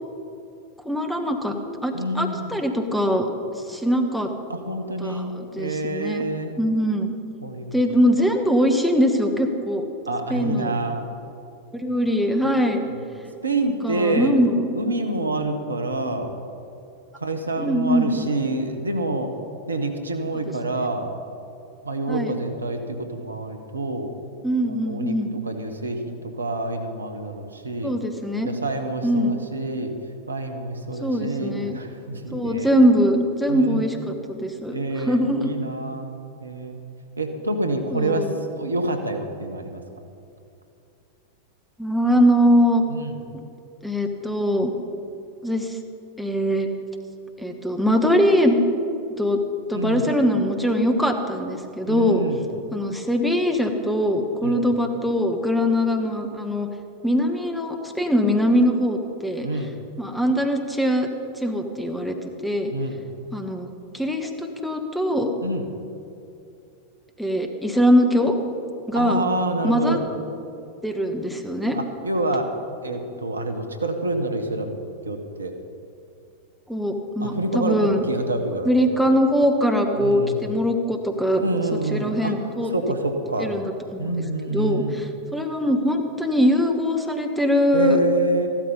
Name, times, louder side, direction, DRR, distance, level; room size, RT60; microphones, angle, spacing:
voice 1, 0.8-1.6 1.8-3.3 3.7-4.3 5.0-6.2 6.6-7.1 7.7-9.9 10.3-10.7 11.7-12.8 13.8-14.7 17.6-18.3 22.1-22.3 24.4-25.3 27.8-28.5 29.0-29.4 31.0-31.8 32.3-35.5 37.9-38.3 41.8-42.9 43.8-44.7 45.4-45.8 46.2-46.7 47.4-48.6 49.2-49.4 49.7-52.2 52.7-56.7 57.0-59.5 60.0-61.1 61.4-62.2 62.4-62.7 63.3-65.3 67.2-68.4 68.9-69.2 69.6-70.0 70.8-71.8 76.7-78.0 78.6-81.4 81.9-82.7 83.4-84.1 84.5-88.0, equal, ahead, 4 dB, 1.3 m, -22 dB
voice 2, 1.9-2.6 4.5-6.6 7.4-7.7 10.1-11.1 12.9-13.0 13.4-14.4 14.7-16.3 17.1-19.3 19.7-21.1 21.8-24.2 24.6-25.1 25.5-28.0 28.4-29.9 30.3-32.7 33.5-33.9 34.7-36.1 36.4-36.8 37.2-39.8 42.9-43.1 49.7-50.1 51.9-52.4 54.4-54.7 59.4-59.7 62.7-63.1 65.4-65.7 68.9-70.1 71.7-72.5 72.8-74.8 75.0-75.5 77.2-78.8 80.0-80.5 81.3-82.3 82.7-83.5 84.0-85.0 87.7-88.5, right 2 dB, 75° right, 6 dB, 1.1 m, -27 dB
14.5 x 12.0 x 5.4 m, 2.6 s
figure-of-eight pair, 90°, 0 cm